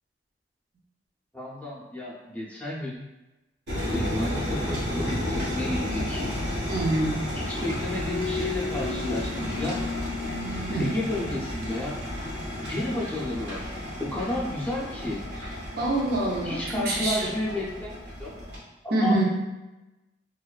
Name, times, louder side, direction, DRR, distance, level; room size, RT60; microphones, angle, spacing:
voice 1, 1.3-3.0 3.9-6.2 7.3-9.8 10.8-11.9 12.7-13.7 14.0-15.6 16.4-17.9 18.2-18.4 18.9-19.2, left 1 dB, 10° left, -6 dB, 0.5 m, -32 dB
sound 1, 3.7-18.6, left 1 dB, 75° right, 1.0 m, -32 dB
voice 2, 6.7-7.3 10.7-10.9 15.8-17.3 18.9-19.2, right 2 dB, 60° right, -4 dB, 0.6 m, -25 dB
sound 2, 8.1-12.8, left 5 dB, 75° left, 0.4 m, -36 dB
2.5 x 2.3 x 2.3 m, 1.1 s
head